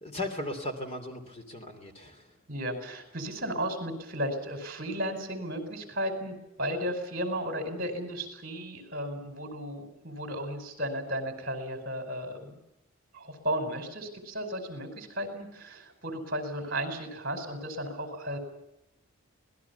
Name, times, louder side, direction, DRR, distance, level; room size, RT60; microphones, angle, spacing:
voice 1, 0.0-2.4, left 1 dB, 30° left, 6 dB, 3.0 m, -37 dB
voice 2, 2.5-12.6 13.1-18.4, equal, 45° right, 6 dB, 4.9 m, -34 dB
25.5 x 19.5 x 7.1 m, 0.88 s
head